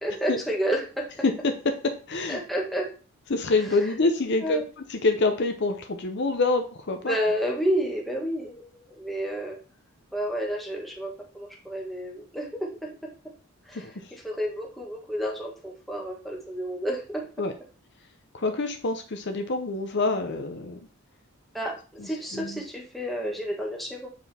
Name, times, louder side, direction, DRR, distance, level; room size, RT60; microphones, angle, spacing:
voice 1, 0.0-1.0 2.3-2.9 4.4-4.6 7.0-9.6 10.1-13.0 13.6-13.9 14.2-17.2 21.5-24.1, equal, ahead, -2 dB, 1.3 m, -30 dB
voice 2, 1.4-2.4 3.3-4.6 4.9-7.2 13.7-14.1 17.4-17.5 18.3-20.8 22.0-22.6, left 3 dB, 50° left, 6 dB, 0.8 m, -26 dB
7.8 x 4.7 x 3.4 m, 0.37 s
head